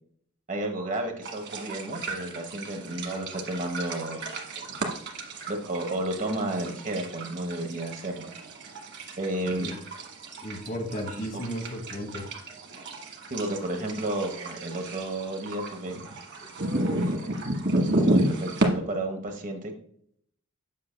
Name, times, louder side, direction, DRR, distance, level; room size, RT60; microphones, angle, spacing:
voice 1, 0.5-4.2 4.7-4.8 5.5-8.3 9.2-9.7 11.1-11.5 13.3-16.0 16.9-17.3 18.0-19.7, right 1 dB, 35° right, 4 dB, 1.1 m, -32 dB
sound 1, 1.2-18.7, right 1 dB, 50° right, 1.4 m, -32 dB
voice 2, 9.4-9.8 10.4-12.3, equal, 35° left, 3 dB, 1.3 m, -34 dB
7.6 x 7.1 x 2.2 m, 0.64 s
head